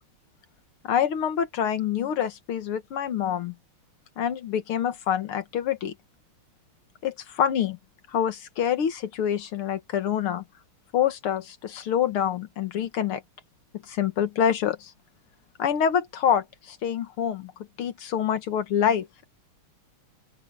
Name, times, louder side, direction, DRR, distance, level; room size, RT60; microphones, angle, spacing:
voice 1, 0.8-3.5 4.2-5.9 7.0-7.8 8.1-10.4 10.9-13.2 13.9-14.9 15.6-17.5 17.8-19.1, left 9 dB, 75° left, 2.3 m, -26 dB
open air
omnidirectional pair, 2.4 m